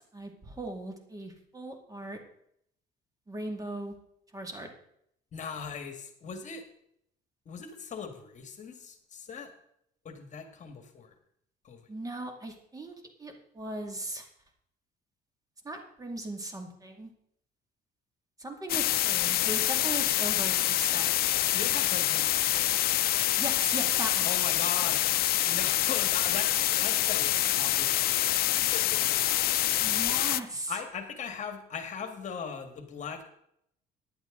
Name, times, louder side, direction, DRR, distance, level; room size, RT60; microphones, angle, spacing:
voice 1, 0.1-2.2 3.3-4.0 4.3-4.7 11.9-12.9 13.2-14.3 15.6-17.1 18.4-21.1 23.4-24.3 29.8-30.7, right 1 dB, 20° right, 4 dB, 2.3 m, -38 dB
voice 2, 5.3-6.6 7.5-9.5 10.0-11.1 11.6-11.8 21.5-22.8 24.2-25.0 25.4-29.5 30.7-33.3, left 6 dB, 45° left, 6 dB, 1.9 m, -39 dB
sound 1, 18.7-30.4, left 14 dB, 65° left, 0.5 m, -26 dB
15.0 x 10.5 x 3.9 m, 0.72 s
cardioid pair, 110°, 17 cm